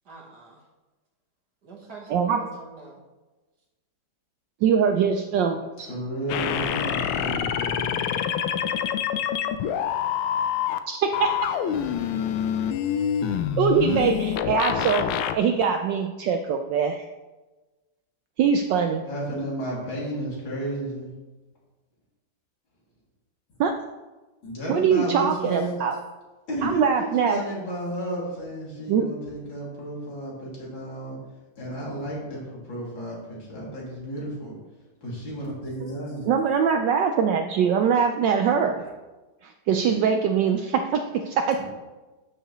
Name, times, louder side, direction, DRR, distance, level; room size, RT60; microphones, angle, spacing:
voice 1, 0.0-0.6 1.6-3.0, right 3 dB, 55° right, -1 dB, 1.6 m, -44 dB
voice 2, 4.6-5.9 10.9-11.3 13.6-17.1 18.4-19.0 23.6-23.7 24.7-25.9 26.6-27.4 28.9-29.1 35.8-35.9 36.3-38.8 39.4-41.6, right 6 dB, 75° right, 5 dB, 1.1 m, -23 dB
voice 3, 5.8-8.1 19.0-21.1 24.4-25.8 26.5-31.2 31.6-34.5 35.0-36.3 41.5-41.6, right 1 dB, 65° left, -5 dB, 3.4 m, -32 dB
sound 1, 6.3-10.8 11.1-15.4, left 9 dB, 80° left, 1.4 m, -26 dB
12.5 x 6.4 x 3.0 m, 1.2 s
omnidirectional pair, 2.4 m